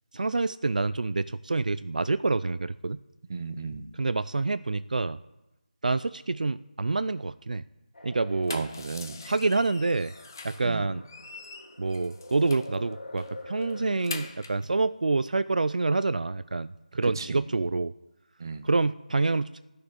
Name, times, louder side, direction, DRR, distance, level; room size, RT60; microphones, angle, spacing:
voice 1, 0.1-3.0 3.9-5.2 5.8-7.6 8.0-8.6 9.2-10.1 10.4-11.0 11.8-17.9 18.6-19.6, right 3 dB, 60° right, 14 dB, 0.4 m, -27 dB
voice 2, 3.3-3.9 8.5-9.2 10.6-10.9 17.0-17.4 18.4-18.6, right 4 dB, 25° right, 10 dB, 0.7 m, -34 dB
sound 1, 7.9-14.3, left 2 dB, 80° left, 3.7 m, -46 dB
sound 2, 8.2-10.7 11.0-12.8 13.2-13.3 13.6-14.7, left 4 dB, 25° left, 0.7 m, -43 dB
12.0 x 6.6 x 9.6 m, 0.99 s
figure-of-eight pair, 175°, 5 cm